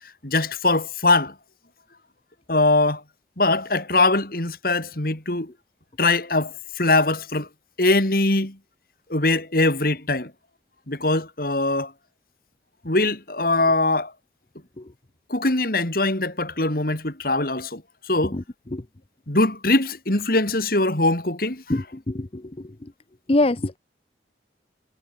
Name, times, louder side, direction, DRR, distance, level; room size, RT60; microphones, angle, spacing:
voice 1, 0.2-1.3 2.5-3.0 3.4-5.5 6.0-7.5 7.8-8.6 9.1-10.3 10.9-11.9 12.8-14.1 15.3-17.8 18.1-18.4 19.3-21.6, left 2 dB, 50° left, 3.2 m, -22 dB
voice 2, 21.7-22.4 23.3-23.8, left 2 dB, 35° left, 0.7 m, -23 dB
head